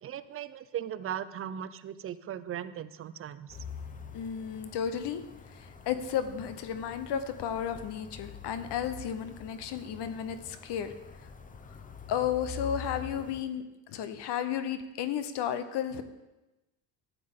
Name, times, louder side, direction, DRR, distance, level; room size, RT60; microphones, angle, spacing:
voice 1, 0.0-3.6, right 10 dB, 30° right, 14 dB, 0.4 m, -38 dB
sound 1, 3.5-13.4, left 6 dB, 20° left, 0.5 m, -46 dB
voice 2, 4.1-5.2 5.5-10.9 12.1-13.6 13.9-16.0, left 9 dB, 60° left, 11 dB, 0.9 m, -33 dB
12.5 x 8.5 x 3.7 m, 1.0 s
cardioid pair, 125°, 46 cm